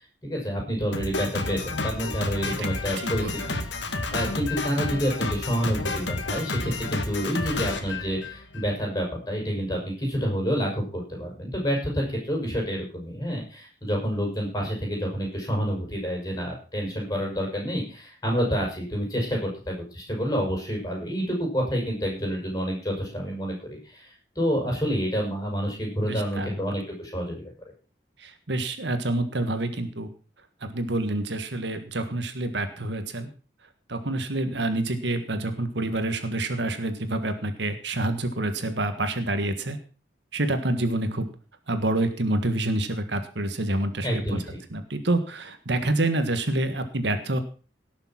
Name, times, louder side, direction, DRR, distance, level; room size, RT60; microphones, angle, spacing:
voice 1, 0.2-3.4 3.8-24.1 24.3-27.5 44.0-44.4, equal, 20° left, 0 dB, 6.3 m, -28 dB
Drum kit, 0.9-8.7, left 2 dB, 75° left, 2.0 m, -31 dB
voice 2, 3.0-3.5 26.1-26.5 28.2-30.1 30.6-33.3 33.9-39.8 40.3-41.3 41.7-44.4 44.7-47.4, right 2 dB, 70° right, 9 dB, 1.6 m, -27 dB
18.0 x 7.0 x 5.9 m, 0.37 s
head